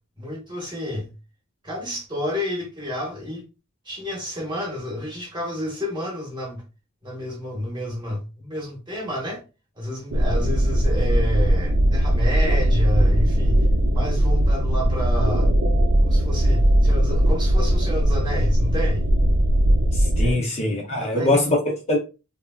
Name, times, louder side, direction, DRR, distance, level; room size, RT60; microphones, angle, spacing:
voice 1, 0.2-1.1 1.6-3.4 3.8-6.6 7.0-9.4 9.8-13.6 13.9-15.5 16.0-19.0 20.2-20.4 21.0-21.3, left 1 dB, 20° right, 0.9 m, -30 dB
sound 1, 10.1-20.3, right 1 dB, 90° right, 0.6 m, -19 dB
voice 2, 19.9-22.0, left 2 dB, 30° left, 0.5 m, -23 dB
3.3 x 2.1 x 2.2 m
head